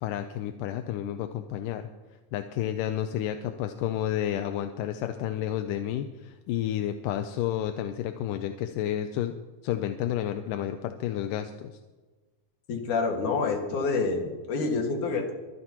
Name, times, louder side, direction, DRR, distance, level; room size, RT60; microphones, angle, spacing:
voice 1, 0.0-1.9 2.3-9.3 9.6-11.7, left 11 dB, 85° left, 7 dB, 2.3 m, -31 dB
voice 2, 12.7-15.3, left 4 dB, 70° left, 2 dB, 3.3 m, -27 dB
23.5 x 14.0 x 3.0 m, 1.3 s
omnidirectional pair, 3.8 m